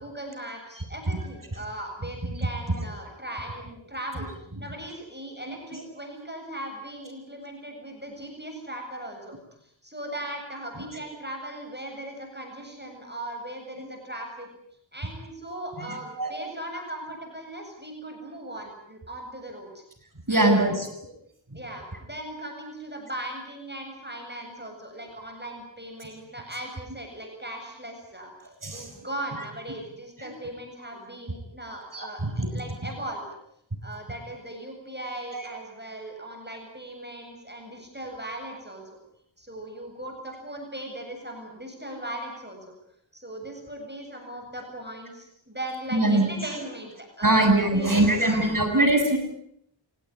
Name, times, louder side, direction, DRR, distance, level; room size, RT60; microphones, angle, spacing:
voice 1, 0.0-4.3 4.6-9.4 9.8-14.5 14.9-19.8 20.3-20.7 21.5-28.3 28.7-33.2 33.8-38.8 39.4-42.7 43.1-48.7, right 1 dB, 20° right, 3 dB, 7.8 m, -38 dB
voice 2, 15.8-16.3 20.3-21.1 21.5-21.6 28.6-29.1 30.2-30.3 31.9-32.5 32.8-32.9 35.3-35.5 45.9-46.3 47.2-49.2, right 1 dB, 40° right, 4 dB, 7.8 m, -23 dB
29.5 x 18.0 x 9.8 m, 0.73 s
wide cardioid pair, 55°, 47 cm